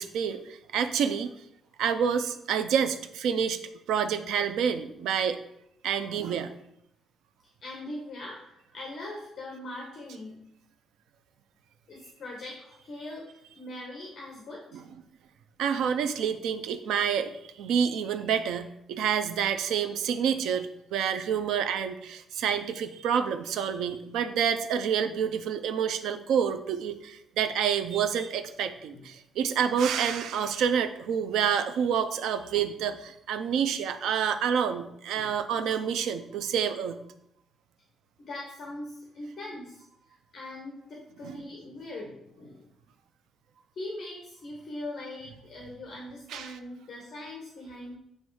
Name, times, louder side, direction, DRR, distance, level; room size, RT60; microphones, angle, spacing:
voice 1, 0.0-1.3 1.8-3.6 3.9-5.4 5.8-6.5 14.7-14.8 15.6-37.0 41.2-41.4 46.3-46.5, right 7 dB, 85° right, 9 dB, 0.5 m, -28 dB
voice 2, 7.6-10.4 11.9-14.8 28.9-29.1 35.1-35.3 38.2-42.7 43.7-48.0, left 1 dB, 40° left, -2 dB, 1.1 m, -41 dB
7.9 x 3.1 x 4.7 m, 0.78 s
cardioid pair, 175°, 0 cm